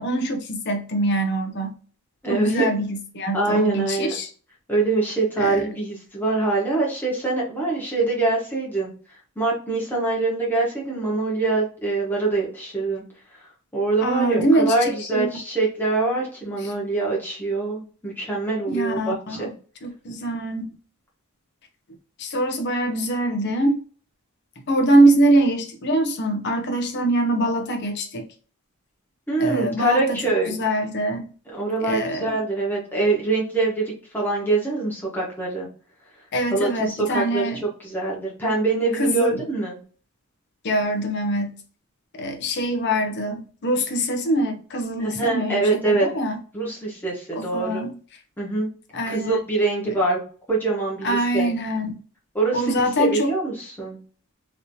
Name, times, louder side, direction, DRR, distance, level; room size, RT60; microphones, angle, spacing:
voice 1, 0.0-1.7 2.3-4.3 5.4-5.6 14.0-15.3 16.6-16.7 18.7-19.5 19.8-20.7 22.2-23.8 24.7-28.3 29.4-31.3 31.8-32.3 36.3-37.6 39.0-39.4 40.6-41.6 42.2-46.4 47.3-47.9 48.9-49.4 49.9-50.0 51.0-51.9 52.5-53.3, right 1 dB, 50° left, 0.7 m, -23 dB
voice 2, 2.2-2.6 3.3-4.1 4.7-13.0 13.3-13.5 13.7-19.5 29.3-30.6 31.5-35.7 36.5-37.4 37.8-39.8 45.0-46.1 46.5-47.8 48.4-48.7 49.1-50.2 50.5-51.5 52.3-54.0, right 3 dB, 10° left, 1.1 m, -24 dB
3.2 x 2.8 x 2.7 m
head